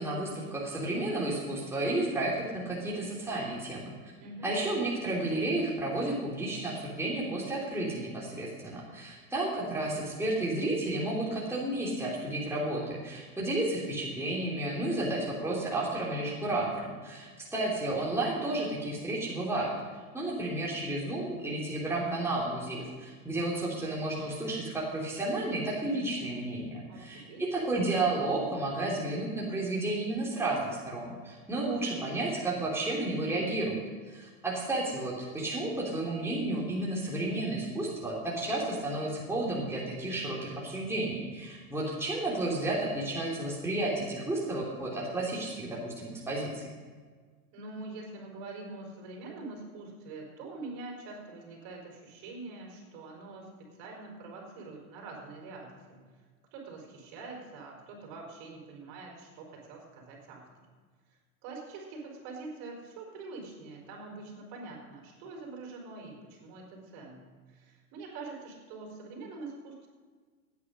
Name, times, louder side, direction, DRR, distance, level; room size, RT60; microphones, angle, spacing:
voice 1, 0.0-3.9 4.4-19.7 20.1-30.6 30.8-46.7, right 2 dB, 5° right, -5 dB, 3.1 m, -32 dB
voice 2, 4.2-4.5 26.9-27.4 47.5-53.5 53.8-56.0 56.5-60.7 61.1-69.9, right 3 dB, 50° right, 0 dB, 4.6 m, -45 dB
16.5 x 9.6 x 5.4 m, 1.5 s
hypercardioid pair, 120°, 43 cm